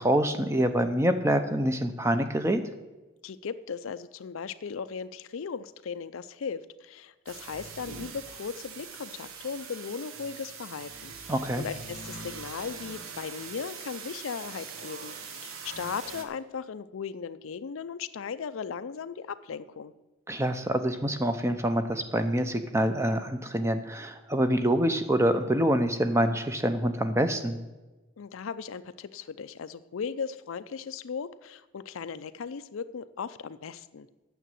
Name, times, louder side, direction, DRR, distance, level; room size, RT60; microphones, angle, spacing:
voice 1, 0.0-2.6 11.3-11.7 20.3-27.6, right 1 dB, 15° right, 8 dB, 0.6 m, -26 dB
voice 2, 3.2-19.9 28.2-34.1, left 6 dB, 75° left, 14 dB, 0.4 m, -37 dB
sound 1, 7.3-16.2, right 5 dB, 85° right, 1.1 m, -42 dB
9.2 x 7.2 x 7.6 m, 1.1 s
head